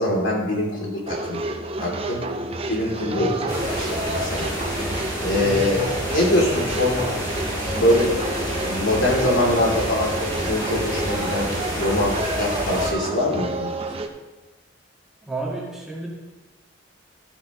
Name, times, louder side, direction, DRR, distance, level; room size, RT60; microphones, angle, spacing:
voice 1, 0.0-1.4 1.8-2.2 2.7-4.5 4.8-4.9 5.2-7.0 7.6-8.1 8.6-13.7, left 1 dB, 75° left, -3 dB, 3.0 m, -23 dB
sound 1, 1.1-14.1, right 2 dB, 30° right, 0.7 m, -30 dB
voice 2, 3.2-3.5 5.4-5.8 15.2-16.1, right 2 dB, 5° right, -4 dB, 1.8 m, -31 dB
sound 2, 3.5-12.9, equal, 20° left, 2.3 m, -29 dB
14.0 x 9.2 x 3.1 m, 1.1 s
head